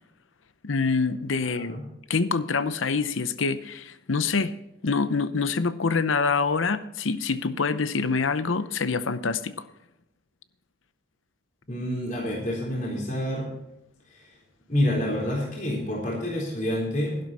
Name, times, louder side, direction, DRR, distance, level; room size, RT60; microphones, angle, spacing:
voice 1, 0.6-1.8 2.1-4.5 4.8-9.6, left 4 dB, 85° left, 13 dB, 0.7 m, -26 dB
voice 2, 1.4-1.8 11.7-13.5 14.7-17.2, left 1 dB, 40° left, -3 dB, 3.8 m, -28 dB
12.0 x 11.5 x 4.2 m, 0.84 s
head